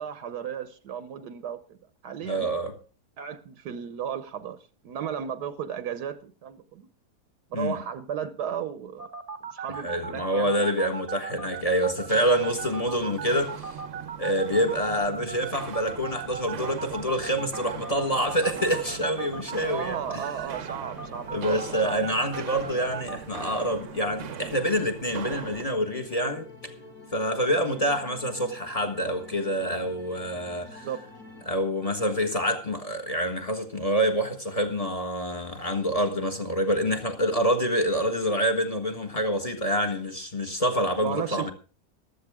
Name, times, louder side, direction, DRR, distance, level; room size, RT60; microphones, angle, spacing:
voice 1, 0.0-1.8 2.0-2.5 3.2-4.6 4.8-6.9 7.5-9.1 9.4-10.7 19.7-21.5 21.8-22.0 27.6-27.8 30.6-31.0 31.4-31.5 41.0-41.5, right 8 dB, 75° right, 1.4 m, -35 dB
voice 2, 2.2-2.7 7.5-7.7 9.8-13.7 14.2-20.3 21.3-26.7 27.1-30.9 31.5-41.5, equal, 25° left, 1.4 m, -27 dB
sound 1, 9.0-23.2, right 5 dB, 25° right, 1.2 m, -37 dB
Walk footsteps, 11.9-25.7, right 8 dB, 55° right, 1.1 m, -41 dB
sound 2, 17.1-31.4, left 2 dB, 85° left, 4.6 m, -48 dB
15.0 x 12.0 x 3.6 m
omnidirectional pair, 1.8 m